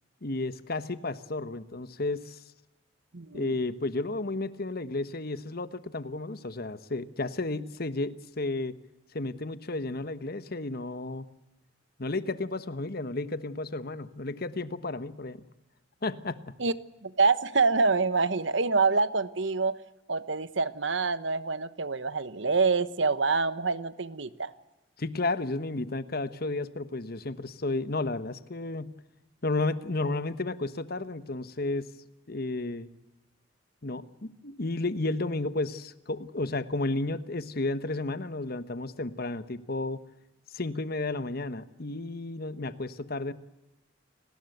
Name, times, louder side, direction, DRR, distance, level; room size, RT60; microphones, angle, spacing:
voice 1, 0.2-2.4 3.3-8.8 9.1-11.2 12.0-15.4 16.0-16.4 25.0-29.0 29.4-31.9 32.3-32.9 33.8-40.0 40.5-43.3, left 2 dB, 50° left, 13 dB, 1.2 m, -32 dB
voice 2, 3.1-3.5 16.6-16.7 17.0-19.7 20.1-24.5, right 4 dB, 70° right, 14 dB, 1.2 m, -26 dB
29.5 x 19.5 x 8.0 m, 0.95 s
head